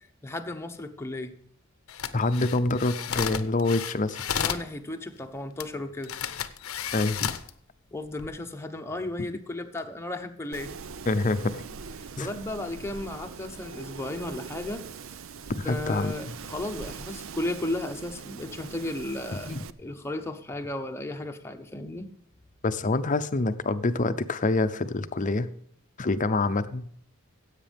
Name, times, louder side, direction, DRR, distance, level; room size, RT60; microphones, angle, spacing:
voice 1, 0.2-1.4 4.3-6.1 7.9-10.8 12.0-14.8 15.6-19.5 19.8-22.1, left 2 dB, 10° left, 5 dB, 1.0 m, -34 dB
sound 1, 1.9-4.7 5.6-5.7 6.0-7.5 8.0-8.3, left 8 dB, 80° left, 0.8 m, -32 dB
voice 2, 2.1-4.2 6.9-7.3 11.1-11.6 12.2-12.3 15.5-16.1 19.5-19.6 22.6-25.5 26.0-26.8, left 2 dB, 40° left, 11 dB, 0.7 m, -26 dB
Wind, 10.5-19.7, right 5 dB, 70° right, 0.6 m, -42 dB
16.0 x 8.3 x 3.5 m, 0.63 s
head